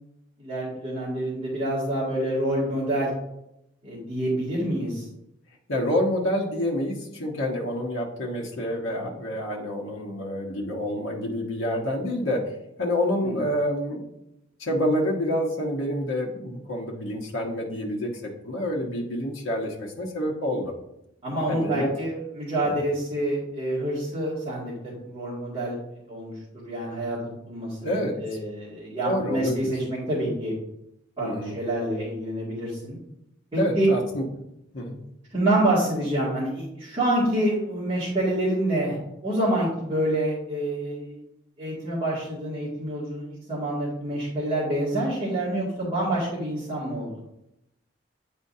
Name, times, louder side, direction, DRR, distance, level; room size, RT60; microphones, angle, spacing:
voice 1, 0.4-3.1 3.8-5.1 13.2-13.4 21.2-25.7 26.1-27.2 27.5-30.5 31.2-33.0 33.5-33.9 35.3-39.0 39.2-41.2 41.6-47.2, right 1 dB, 25° right, -12 dB, 2.2 m, -27 dB
voice 2, 5.7-12.4 12.8-14.0 14.6-20.7 21.5-21.9 22.7-22.8 27.8-28.1 29.0-29.7 31.2-31.6 33.6-34.2 34.7-35.0, left 1 dB, 85° left, -2 dB, 1.1 m, -28 dB
8.8 x 4.4 x 2.7 m, 0.83 s
head